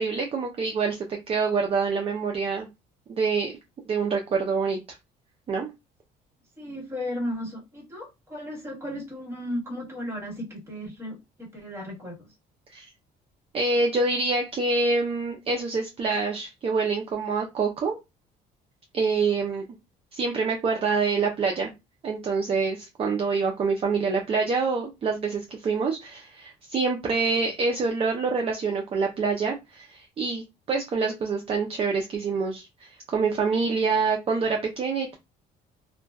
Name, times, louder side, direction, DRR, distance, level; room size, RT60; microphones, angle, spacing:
voice 1, 0.0-2.7 3.1-3.5 3.9-4.8 5.5-5.7 12.7-12.9 13.5-18.0 18.9-19.6 20.1-21.7 22.0-35.1, right 4 dB, 35° right, 2 dB, 0.6 m, -26 dB
voice 2, 6.6-12.3, left 1 dB, 15° right, -3 dB, 1.4 m, -35 dB
2.4 x 2.2 x 2.3 m, 0.23 s
cardioid pair, 110°, 17 cm